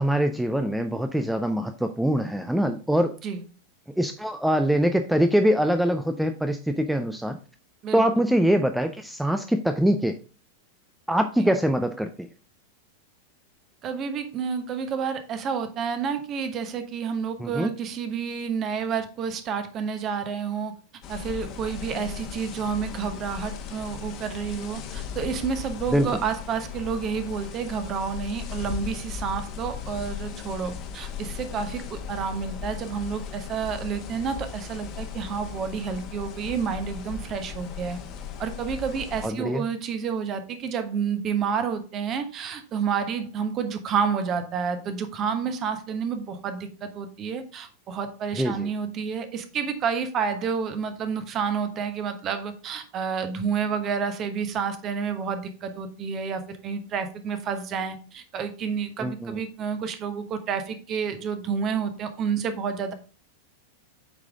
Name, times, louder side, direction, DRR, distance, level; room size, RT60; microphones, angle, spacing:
voice 1, 0.0-3.1 4.0-7.4 7.9-10.2 11.1-12.3 17.4-17.7 25.9-26.2 39.2-39.6 48.3-48.7 59.0-59.4, equal, ahead, 7 dB, 0.5 m, -23 dB
voice 2, 13.8-20.8 21.1-38.0 38.4-62.9, right 6 dB, 30° right, 9 dB, 1.1 m, -29 dB
sound 1, 21.0-39.3, left 8 dB, 35° left, 1.2 m, -37 dB
8.3 x 4.9 x 3.6 m, 0.36 s
figure-of-eight pair, 90°, 0 cm